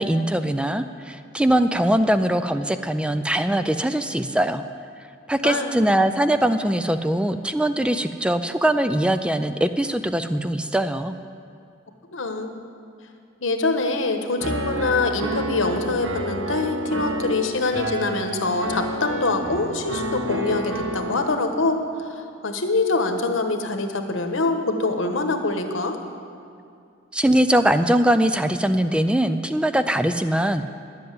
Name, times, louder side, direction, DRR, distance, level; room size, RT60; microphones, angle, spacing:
voice 1, 0.0-4.6 5.3-11.1 27.1-30.7, right 1 dB, 5° right, 10 dB, 0.3 m, -21 dB
voice 2, 12.1-12.6 13.4-26.0, left 3 dB, 90° left, 6 dB, 1.1 m, -24 dB
Piano, 14.4-21.2, right 1 dB, 80° right, 1.2 m, -30 dB
10.5 x 7.9 x 9.2 m, 2.4 s
head